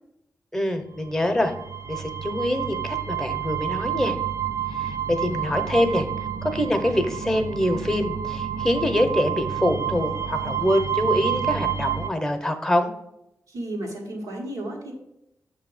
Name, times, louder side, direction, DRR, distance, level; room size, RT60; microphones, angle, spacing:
voice 1, 0.5-1.5 1.9-4.1 4.8-6.1 6.4-12.9, left 1 dB, 10° left, 7 dB, 0.9 m, -24 dB
sound 1, 1.1-12.1, right 9 dB, 70° right, 0.5 m, -29 dB
voice 2, 13.5-14.9, right 1 dB, 85° right, -1 dB, 1.5 m, -33 dB
6.6 x 2.8 x 5.4 m, 0.81 s
cardioid pair, 60°, 6 cm